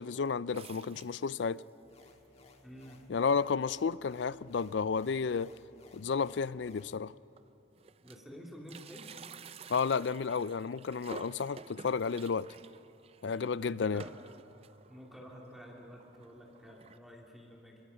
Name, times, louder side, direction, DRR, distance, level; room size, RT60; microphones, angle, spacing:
voice 1, 0.0-1.6 3.1-5.5 5.9-7.1 9.7-12.5 13.2-14.0, left 5 dB, 65° left, 0.4 m, -32 dB
sound 1, 0.5-1.7 2.2-2.3 2.5-2.6 3.5-3.6 4.0-4.2 4.5-4.6 5.9-6.0 6.7-6.8 7.1-8.3 8.6-17.0, right 5 dB, 30° right, 0.4 m, -52 dB
sound 2, 1.8-7.0, left 3 dB, 35° left, 1.6 m, -60 dB
voice 2, 2.6-3.0 8.0-9.1 13.7-14.2 14.9-17.8, equal, ahead, 2.6 m, -50 dB
29.0 x 23.0 x 5.7 m
head